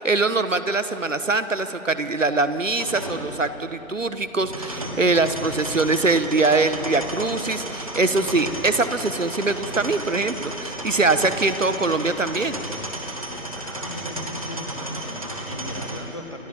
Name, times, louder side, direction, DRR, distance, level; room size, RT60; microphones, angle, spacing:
voice 1, 0.0-12.6, right 3 dB, 60° right, 11 dB, 1.3 m, -23 dB
sound 1, 2.8-16.0, right 1 dB, 25° right, 1.7 m, -33 dB
voice 2, 13.5-16.5, left 1 dB, 25° left, 3 dB, 1.5 m, -38 dB
28.5 x 14.0 x 8.8 m, 2.9 s
figure-of-eight pair, 175°, 42 cm